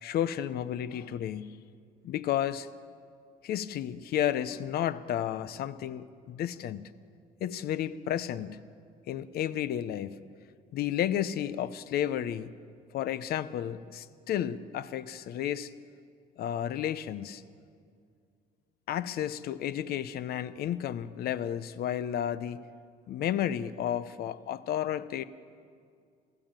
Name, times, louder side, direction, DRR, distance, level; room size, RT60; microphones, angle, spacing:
voice 1, 0.0-1.6 2.0-2.7 3.4-6.9 7.4-8.6 9.1-10.2 10.7-12.5 12.9-15.7 16.4-17.4 18.9-22.6 23.1-25.2, left 10 dB, 65° left, 15 dB, 0.9 m, -32 dB
28.0 x 16.5 x 9.0 m, 2.3 s
cardioid pair, 110°, 17 cm